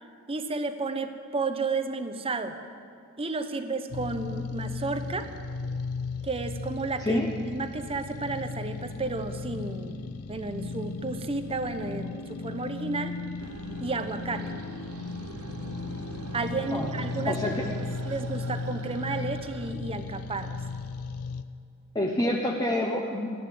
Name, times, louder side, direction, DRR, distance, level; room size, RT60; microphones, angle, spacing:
voice 1, 0.3-2.6 3.2-5.3 6.2-10.0 10.3-13.2 13.8-14.5 16.3-17.4 18.0-20.6, right 3 dB, 25° right, 9 dB, 0.8 m, -32 dB
sound 1, 3.9-21.4, left 4 dB, 90° left, 0.6 m, -36 dB
sound 2, 13.4-19.7, right 4 dB, 80° right, 0.6 m, -43 dB
voice 2, 17.3-17.6 21.9-23.3, left 1 dB, 20° left, 0 dB, 0.9 m, -27 dB
15.0 x 11.5 x 7.8 m, 2.3 s
head